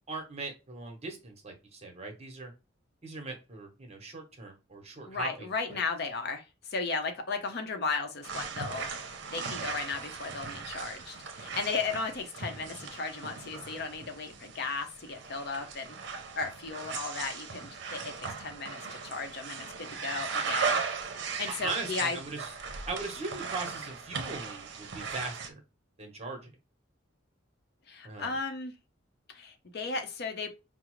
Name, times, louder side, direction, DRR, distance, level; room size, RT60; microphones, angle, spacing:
voice 1, 0.1-2.5 3.0-5.8 21.5-22.5 22.9-25.6 26.0-26.5 28.0-28.4, right 3 dB, 35° right, 1.0 m, -39 dB
voice 2, 5.0-6.4 6.7-8.9 9.3-20.8 21.4-22.2 27.9-28.7 29.3-30.5, left 4 dB, 55° left, 0.7 m, -35 dB
passi su vecchio parquet attenzione al centro, 8.2-25.5, right 5 dB, 60° right, 0.6 m, -38 dB
4.9 x 2.0 x 3.1 m
head